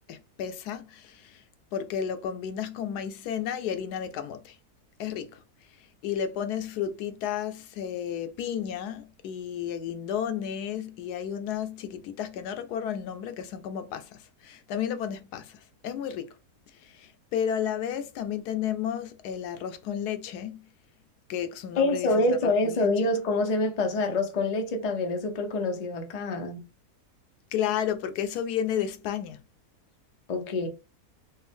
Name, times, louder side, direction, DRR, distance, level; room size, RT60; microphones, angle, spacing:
voice 1, 0.1-1.4 1.7-4.6 5.0-5.4 6.0-16.3 16.8-20.7 21.3-22.9 27.5-29.4, left 9 dB, 85° left, 1.2 m, -32 dB
voice 2, 21.8-26.6 30.3-30.7, left 2 dB, 45° left, 0.5 m, -26 dB
4.3 x 2.0 x 3.4 m
omnidirectional pair, 1.6 m